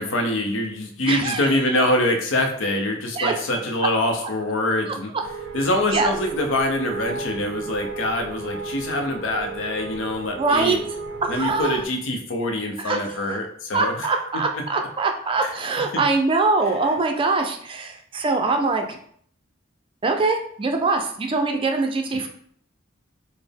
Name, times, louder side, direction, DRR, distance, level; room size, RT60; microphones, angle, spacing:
voice 1, 0.0-5.1 5.5-10.8 11.3-14.1 14.5-14.6 15.4-15.5 15.9-16.0 22.1-22.3, left 1 dB, 80° left, 3 dB, 0.6 m, -24 dB
voice 2, 1.0-1.8 3.2-3.3 4.9-5.0 5.9-6.1 10.4-10.8 11.3-11.8 12.8-13.4 13.7-19.0 20.0-22.3, right 3 dB, 25° right, 4 dB, 0.4 m, -23 dB
sound 1, 5.2-11.9, right 4 dB, 90° right, 0.5 m, -33 dB
4.1 x 2.0 x 3.4 m, 0.62 s
head